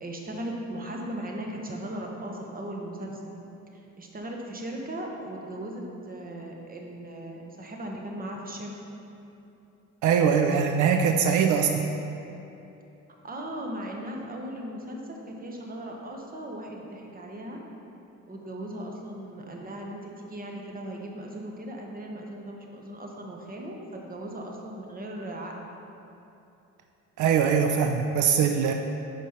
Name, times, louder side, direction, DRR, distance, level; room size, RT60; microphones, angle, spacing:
voice 1, 0.0-3.2 3.7-8.7 13.2-17.6 18.3-25.7, right 1 dB, 30° right, 0 dB, 1.0 m, -37 dB
voice 2, 10.0-11.8 27.2-28.7, right 7 dB, 75° right, 5 dB, 0.5 m, -22 dB
5.3 x 5.0 x 5.6 m, 2.8 s
cardioid pair, 90°, 30 cm